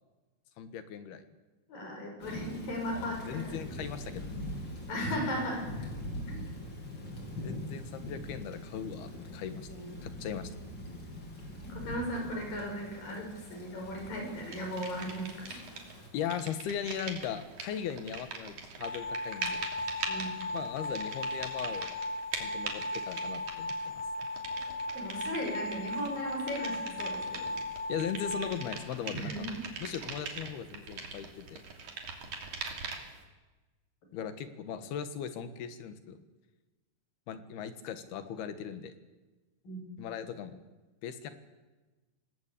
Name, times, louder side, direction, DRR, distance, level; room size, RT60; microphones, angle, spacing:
voice 1, 0.6-1.2 2.9-4.4 7.4-9.7 10.0-10.5 15.5-15.6 16.1-19.7 20.5-21.9 22.4-23.7 27.9-29.3 29.8-31.6 34.1-36.2 37.3-38.9 40.0-40.6 41.0-41.3, left 8 dB, 90° left, 10 dB, 3.6 m, -38 dB
voice 2, 1.7-3.7 4.9-5.7 6.3-6.4 9.7-9.9 11.6-15.6 20.1-20.4 24.9-27.5 29.1-29.6 39.6-39.9, equal, 60° left, 1 dB, 8.0 m, -37 dB
Thunder / Rain, 2.2-16.1, left 1 dB, 30° left, 4.5 m, -43 dB
sound 1, 14.5-33.2, right 4 dB, 55° right, 4.1 m, -42 dB
sound 2, 18.8-28.6, left 2 dB, 20° right, 2.2 m, -37 dB
26.5 x 18.5 x 8.5 m, 1.2 s
omnidirectional pair, 4.4 m